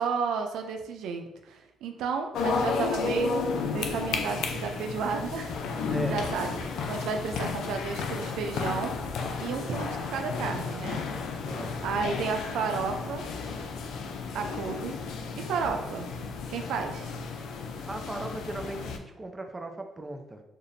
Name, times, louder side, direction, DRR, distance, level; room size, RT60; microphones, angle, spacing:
voice 1, 0.0-9.0 9.4-11.1 11.8-13.3 14.3-15.0 15.4-16.1 16.5-17.1, right 5 dB, 85° right, 4 dB, 0.4 m, -32 dB
sound 1, 2.3-19.0, left 5 dB, 80° left, 0.5 m, -33 dB
voice 2, 5.9-6.3 9.5-9.8 11.4-11.8 17.8-20.4, right 2 dB, 20° right, 4 dB, 0.6 m, -37 dB
6.7 x 2.5 x 2.6 m, 0.96 s
cardioid pair, 90°, 0 cm